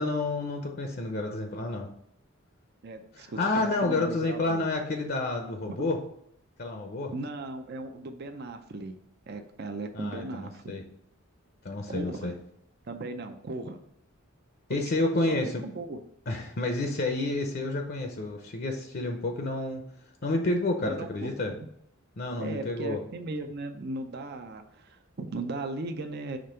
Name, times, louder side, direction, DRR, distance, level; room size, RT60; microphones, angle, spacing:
voice 1, 0.0-1.9 3.1-6.0 6.6-7.1 9.9-10.8 11.6-12.3 14.7-15.6 16.3-19.8 20.2-21.5 22.2-23.0, left 2 dB, 45° left, 4 dB, 0.6 m, -30 dB
voice 2, 2.8-4.6 5.7-5.8 7.1-8.9 9.3-10.8 11.9-12.3 12.9-13.8 14.7-15.4 15.6-16.0 20.9-21.7 22.4-26.4, right 2 dB, 50° right, 6 dB, 0.5 m, -37 dB
5.1 x 3.3 x 5.5 m, 0.72 s
head